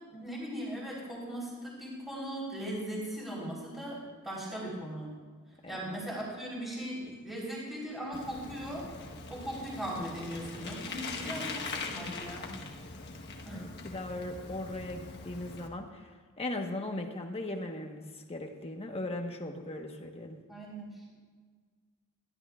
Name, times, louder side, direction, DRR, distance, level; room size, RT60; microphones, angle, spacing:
voice 1, 0.1-4.0 4.2-5.1 5.7-8.9 9.3-12.5 13.5-13.6 20.5-20.9, right 1 dB, ahead, -6 dB, 3.9 m, -38 dB
Bicycle, 8.1-15.7, left 3 dB, 50° left, 1.3 m, -42 dB
voice 2, 13.5-20.4, left 1 dB, 25° left, 3 dB, 1.2 m, -38 dB
21.0 x 14.0 x 2.4 m, 1.5 s
head